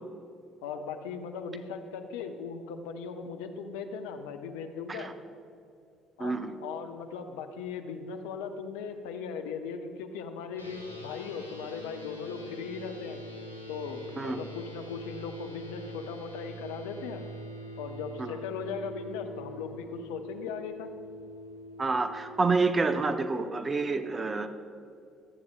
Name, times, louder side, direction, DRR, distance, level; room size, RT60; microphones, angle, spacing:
voice 1, 0.6-5.1 6.2-13.2 13.7-17.2 17.8-20.9, left 5 dB, 70° left, 6 dB, 0.7 m, -38 dB
voice 2, 6.2-6.5 14.2-14.4 18.2-18.3 21.8-24.5, right 3 dB, 30° right, 10 dB, 0.7 m, -28 dB
sound 1, 10.5-22.4, equal, 90° right, 0.9 m, -44 dB
22.5 x 8.5 x 2.3 m, 2.5 s
figure-of-eight pair, 50°, 0 cm